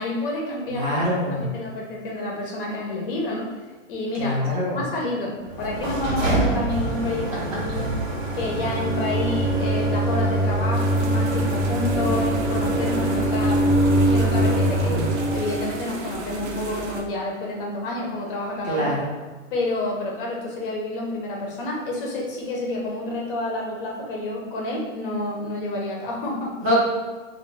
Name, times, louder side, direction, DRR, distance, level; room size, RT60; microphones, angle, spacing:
voice 1, 0.0-1.0 1.3-3.5 3.9-8.0 8.3-13.7 14.1-15.0 15.3-18.9 19.5-26.6, left 2 dB, 45° left, -2 dB, 0.7 m, -29 dB
voice 2, 0.8-1.5 4.2-4.8 18.7-19.1 26.6-26.8, left 1 dB, 20° right, -7 dB, 0.6 m, -24 dB
sound 1, 5.5-15.8, right 1 dB, 85° right, 1.1 m, -23 dB
sound 2, 10.7-17.0, right 3 dB, 60° right, 0.6 m, -34 dB
2.2 x 2.2 x 3.8 m, 1.3 s
hypercardioid pair, 155°, 38 cm